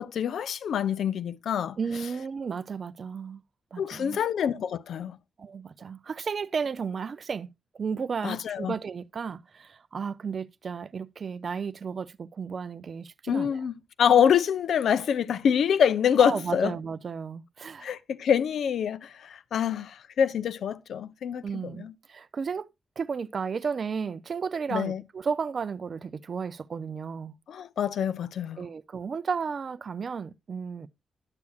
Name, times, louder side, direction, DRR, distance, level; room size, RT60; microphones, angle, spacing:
voice 1, 0.0-1.8 3.8-5.2 8.2-8.7 13.3-16.7 17.8-21.9 24.7-25.0 27.5-28.6, left 8 dB, 80° left, 0.5 m, -26 dB
voice 2, 1.8-3.4 3.7-4.2 5.4-7.5 7.7-13.6 16.2-18.0 21.4-22.7 23.0-27.4 28.6-30.9, right 6 dB, 45° right, 0.4 m, -33 dB
10.5 x 8.4 x 2.3 m
wide cardioid pair, 160°, 0 cm